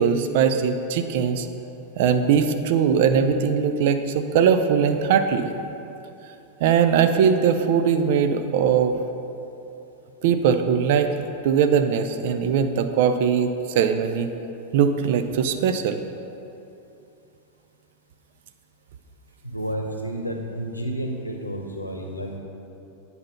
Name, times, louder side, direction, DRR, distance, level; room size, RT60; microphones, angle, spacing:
voice 1, 0.0-1.5 2.0-5.5 6.6-9.0 10.2-11.1 11.4-14.3 14.7-16.0, right 7 dB, 50° right, 8 dB, 0.5 m, -20 dB
voice 2, 19.4-22.4, right 1 dB, 85° left, 2 dB, 0.8 m, -30 dB
8.8 x 4.1 x 5.5 m, 2.8 s
figure-of-eight pair, 90°, 0 cm